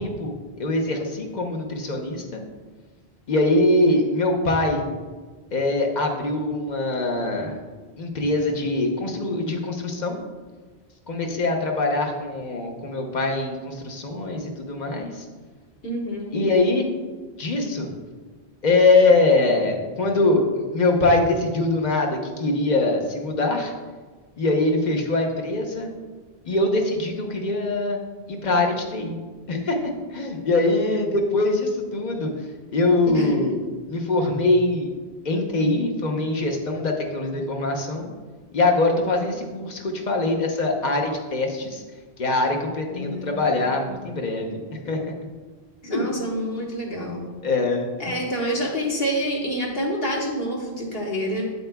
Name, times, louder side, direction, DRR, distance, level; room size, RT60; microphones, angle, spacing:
voice 1, 0.0-2.4 3.3-4.8 5.5-7.6 8.0-10.2 11.1-15.2 16.3-16.9 17.4-17.9 18.6-23.7 24.4-25.9 26.4-29.2 29.5-32.3 32.7-33.5 33.9-34.9 35.2-38.1 38.5-41.8 42.2-45.1 45.9-46.1 47.4-48.1, left 2 dB, 45° left, 2 dB, 0.9 m, -23 dB
voice 2, 15.8-16.5 33.1-33.4 42.9-43.9 45.8-47.3 48.0-51.4, equal, 65° left, -2 dB, 1.4 m, -28 dB
8.3 x 7.9 x 2.2 m, 1.4 s
omnidirectional pair, 1.1 m